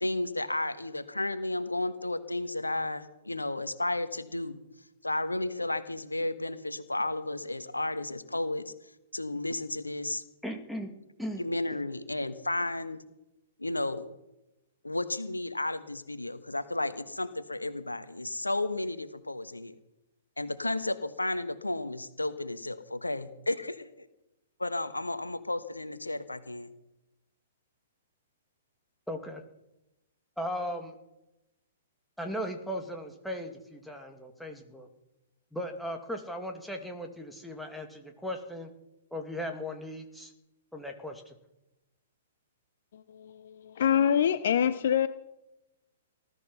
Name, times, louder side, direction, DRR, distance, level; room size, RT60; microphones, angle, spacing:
voice 1, 0.0-4.6 5.0-8.7 9.1-10.2 11.4-13.0 13.6-14.1 14.8-19.8 20.4-24.1 24.6-26.7, left 2 dB, 90° left, 12 dB, 1.3 m, -33 dB
voice 2, 10.4-10.9 11.2-11.4 29.1-29.4 30.4-30.9 32.2-34.9 35.5-38.7 39.1-40.3 40.7-41.3, equal, ahead, 3 dB, 2.5 m, -37 dB
voice 3, 42.9-45.1, left 9 dB, 60° left, 13 dB, 0.9 m, -26 dB
19.5 x 13.0 x 5.6 m, 0.92 s
figure-of-eight pair, 115°, 0 cm